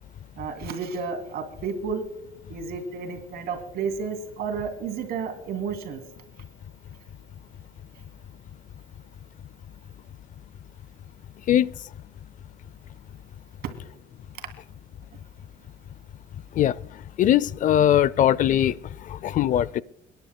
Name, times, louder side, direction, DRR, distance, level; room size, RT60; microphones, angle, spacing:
voice 1, 0.4-2.0 2.5-6.0, right 5 dB, 70° right, 2.8 m, -31 dB
voice 2, 17.2-18.8 19.1-19.8, left 11 dB, 50° left, 0.4 m, -20 dB
29.5 x 10.5 x 2.2 m
cardioid pair, 110°, 17 cm